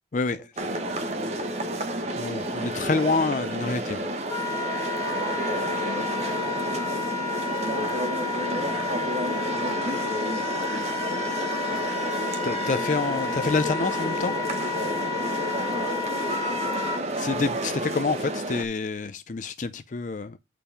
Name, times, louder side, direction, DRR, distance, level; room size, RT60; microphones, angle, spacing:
voice 1, 0.1-0.4 2.2-4.1 12.4-14.3 17.2-20.4, left 4 dB, 45° left, 0.4 m, -27 dB
sound 1, 0.6-18.6, right 1 dB, 35° right, 1.3 m, -30 dB
voice 2, 1.0-1.8 2.7-6.7 7.7-10.0 10.2-11.8 15.8-16.9, right 1 dB, 5° right, 4.8 m, -44 dB
Wind instrument woodwind instrument, 4.3-17.0, left 5 dB, 20° left, 0.8 m, -31 dB
8.8 x 4.7 x 5.0 m
head